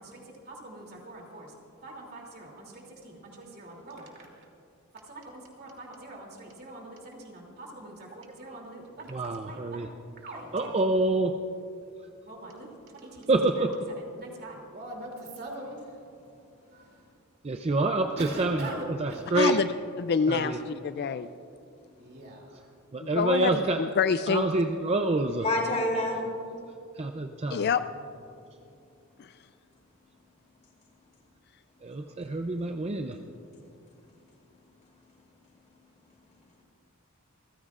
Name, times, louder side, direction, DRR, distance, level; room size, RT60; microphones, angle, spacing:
voice 1, 0.0-1.5 1.8-4.5 5.0-9.9 10.2-10.8 12.2-12.7 13.0-13.1 13.6-13.7 14.0-16.0 16.7-17.1 18.2-19.3 22.0-22.7, right 1 dB, 45° right, 0 dB, 2.8 m, -43 dB
voice 2, 9.1-9.9 10.5-11.4 13.3-13.7 17.4-18.7 19.0-19.6 20.3-20.6 22.9-23.8 24.3-25.4 27.0-27.7 31.8-33.2, right 2 dB, 30° right, 5 dB, 0.5 m, -27 dB
voice 3, 19.3-19.7 20.0-21.3 23.0-24.5 27.5-27.8 29.2-29.3, left 6 dB, 50° left, 12 dB, 0.4 m, -26 dB
voice 4, 25.4-26.2 34.0-34.2 34.8-35.4 36.0-36.6, left 1 dB, 35° left, 0 dB, 3.0 m, -31 dB
28.0 x 15.0 x 2.5 m, 2.6 s
head